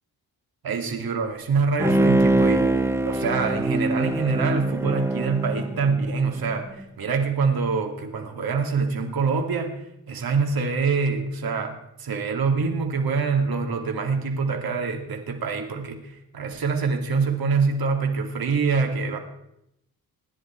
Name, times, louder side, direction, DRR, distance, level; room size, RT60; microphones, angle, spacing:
voice 1, 0.6-9.8 10.1-19.2, right 4 dB, 70° right, 4 dB, 2.8 m, -25 dB
Bowed string instrument, 1.8-6.4 6.8-6.9, right 1 dB, 5° right, 1.2 m, -23 dB
26.0 x 11.0 x 4.6 m, 0.81 s
cardioid pair, 110°, 37 cm